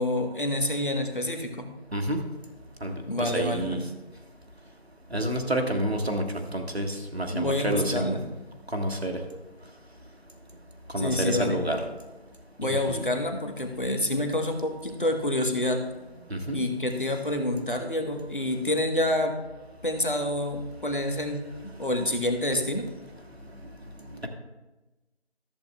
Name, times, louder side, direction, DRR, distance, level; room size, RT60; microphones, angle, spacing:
voice 1, 0.0-1.7 3.1-3.9 7.3-8.2 11.0-11.6 12.6-15.8 16.5-19.4 19.8-21.5 21.8-22.9, left 1 dB, 50° left, 5 dB, 1.2 m, -28 dB
voice 2, 1.9-2.3 2.8-3.9 5.1-8.2 8.7-9.2 10.9-11.9 12.6-13.1 16.3-16.6 23.6-23.7 24.1-24.3, right 1 dB, 70° right, 4 dB, 1.4 m, -29 dB
14.0 x 7.9 x 2.3 m, 1.1 s
figure-of-eight pair, 175°, 33 cm